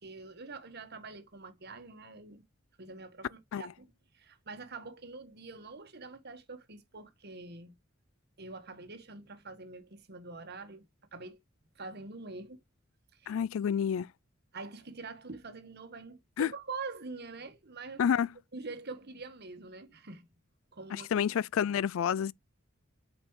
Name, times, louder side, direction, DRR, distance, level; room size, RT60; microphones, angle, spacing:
voice 1, 0.0-2.4 2.8-7.8 8.4-11.4 11.7-12.6 13.1-13.4 14.5-18.0 18.5-20.3 20.7-21.2, right 3 dB, 55° right, 1.5 m, -45 dB
voice 2, 13.3-14.1 16.4-16.5 18.0-18.3 20.9-22.3, left 8 dB, 75° left, 0.3 m, -29 dB
8.3 x 5.1 x 3.1 m
head